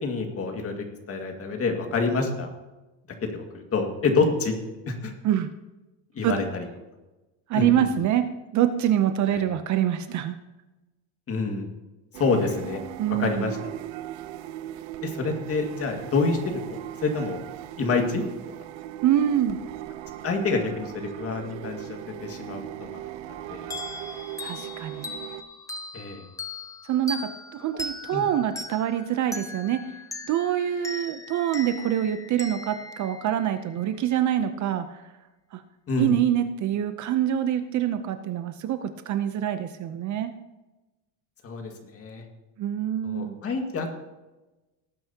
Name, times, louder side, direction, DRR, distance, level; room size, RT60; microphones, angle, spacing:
voice 1, 0.0-0.7 1.1-2.5 3.2-4.5 4.9-5.1 6.1-6.6 7.5-7.9 9.3-9.5 11.3-11.7 12.1-12.8 13.2-13.6 15.0-17.4 17.8-18.2 20.2-23.7 25.9-26.2 28.1-28.2 35.9-36.2 41.4-42.2 43.0-43.9, left 4 dB, 30° left, 3 dB, 2.0 m, -27 dB
voice 2, 7.5-8.2 8.5-10.4 13.0-13.5 19.0-19.6 24.4-25.1 26.9-29.8 30.2-35.0 35.5-35.6 36.0-40.3 42.6-43.4, right 11 dB, 40° right, 10 dB, 0.7 m, -25 dB
sound 1, 12.1-25.4, right 13 dB, 75° right, 0.9 m, -38 dB
sound 2, 23.7-34.0, left 2 dB, 5° left, 0.7 m, -39 dB
18.5 x 9.3 x 2.9 m, 1.1 s
cardioid pair, 145°, 43 cm